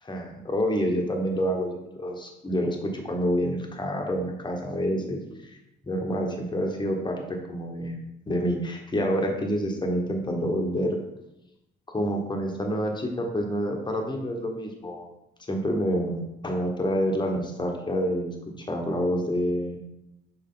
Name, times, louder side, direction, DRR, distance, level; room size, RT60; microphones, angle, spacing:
voice 1, 0.0-5.6 5.8-11.0 11.9-15.1 15.4-19.8, equal, 20° left, 2 dB, 1.3 m, -28 dB
6.7 x 4.6 x 3.8 m, 0.89 s
cardioid pair, 90°, 20 cm